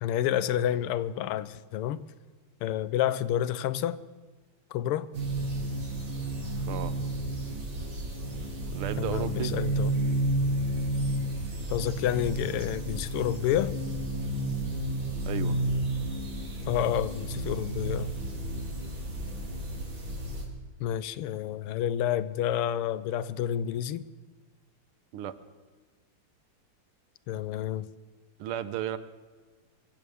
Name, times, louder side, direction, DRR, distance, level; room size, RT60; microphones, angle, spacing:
voice 1, 0.0-2.0 2.6-4.0 4.7-5.1 9.0-10.0 11.7-13.8 16.7-18.1 20.8-24.1 27.3-27.9, left 11 dB, 90° left, 16 dB, 1.6 m, -29 dB
sound 1, 5.1-20.4, right 1 dB, 60° right, 3.7 m, -31 dB
voice 2, 8.7-9.5 15.3-15.6 25.1-25.3 28.4-29.0, right 11 dB, 90° right, 13 dB, 1.7 m, -33 dB
24.0 x 15.5 x 3.5 m, 1.4 s
omnidirectional pair, 2.4 m